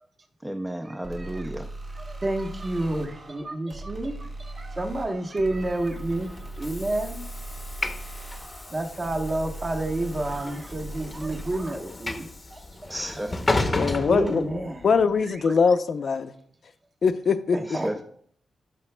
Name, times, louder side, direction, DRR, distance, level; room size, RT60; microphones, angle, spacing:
voice 1, 0.4-1.7 12.9-13.4 17.6-18.0, right 1 dB, 10° right, 5 dB, 0.4 m, -32 dB
sound 1, 1.0-11.7, right 2 dB, 50° right, 2.3 m, -39 dB
voice 2, 2.2-7.3 8.7-12.2 12.5-12.6 14.0-14.8 17.7-18.0, right 2 dB, 35° right, 2 dB, 1.1 m, -29 dB
Train / Sliding door, 5.8-15.0, left 2 dB, 25° left, 0.7 m, -33 dB
voice 3, 13.8-14.5 14.8-16.3 17.0-17.6, left 5 dB, 55° left, 10 dB, 0.5 m, -22 dB
17.0 x 5.7 x 2.2 m, 0.65 s
cardioid pair, 95°, 0 cm